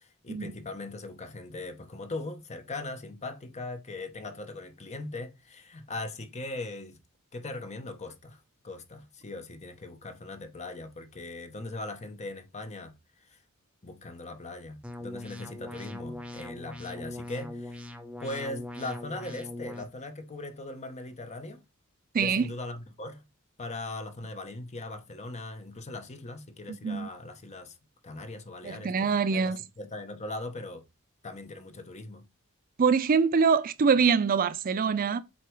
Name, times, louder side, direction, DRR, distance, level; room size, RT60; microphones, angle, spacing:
voice 1, 0.0-7.0 7.3-13.4 13.8-17.9 18.2-21.6 22.2-23.2 23.6-27.8 28.0-30.8 31.2-32.2, left 2 dB, 30° left, 0.9 m, -40 dB
sound 1, 14.8-19.8, left 1 dB, 5° right, 0.8 m, -41 dB
voice 2, 22.1-22.5 26.7-27.1 28.6-29.6 32.8-35.2, right 5 dB, 40° right, 0.4 m, -24 dB
7.9 x 2.9 x 4.6 m
head